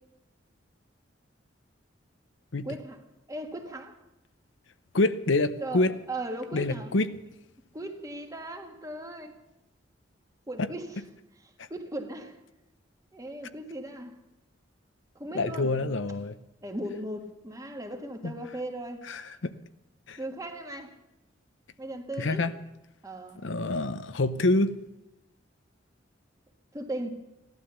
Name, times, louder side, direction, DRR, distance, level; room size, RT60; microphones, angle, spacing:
voice 1, 2.6-3.0 3.3-4.0 5.6-7.0 7.7-9.3 10.5-11.0 11.4-12.4 13.1-14.2 15.1-15.8 16.6-19.0 20.2-21.0 21.8-22.4 23.0-23.4 26.7-27.1, right 1 dB, 20° right, 1.6 m, -37 dB
voice 2, 4.9-5.9 6.5-7.1 15.3-16.4 18.2-18.3 19.1-19.5 20.1-20.2 22.2-22.5 23.4-24.8, left 2 dB, 85° left, 0.8 m, -26 dB
16.0 x 12.0 x 7.0 m
head